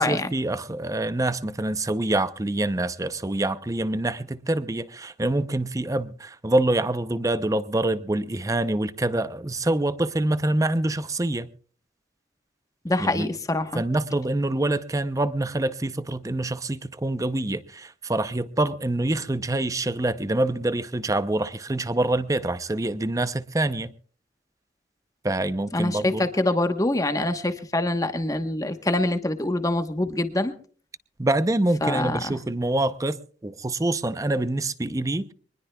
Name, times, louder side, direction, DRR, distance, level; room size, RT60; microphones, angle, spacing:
voice 1, 0.0-11.5 13.0-13.3 13.7-23.9 25.2-26.3 31.2-35.3, right 2 dB, 20° right, 0.6 m, -26 dB
voice 2, 12.8-13.8 25.7-30.5 31.8-32.4, left 1 dB, 20° left, 1.1 m, -25 dB
24.0 x 20.0 x 2.3 m
head